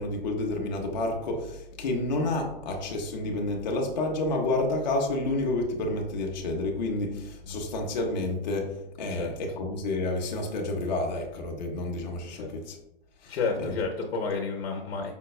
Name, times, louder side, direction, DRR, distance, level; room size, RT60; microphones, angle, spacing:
voice 1, 0.0-8.7 9.0-12.8 13.2-13.7, left 2 dB, 50° left, 1 dB, 0.5 m, -30 dB
voice 2, 13.3-15.1, left 4 dB, 85° left, 1 dB, 0.7 m, -31 dB
5.0 x 2.0 x 2.3 m, 0.86 s
hypercardioid pair, 180°, 29 cm